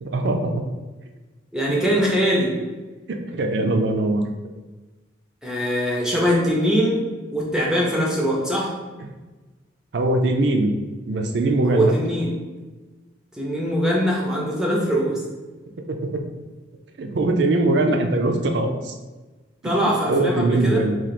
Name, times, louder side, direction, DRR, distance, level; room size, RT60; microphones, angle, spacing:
voice 1, 0.0-0.5 3.1-4.3 9.9-10.7 11.1-11.9 15.9-16.2 17.0-18.9 19.6-21.0, right 2 dB, 60° right, 4 dB, 0.4 m, -21 dB
voice 2, 1.5-2.6 5.4-7.0 7.3-8.8 11.6-12.3 13.4-15.2 19.6-20.9, equal, 5° right, -3 dB, 0.5 m, -22 dB
3.1 x 2.4 x 4.0 m, 1.2 s
head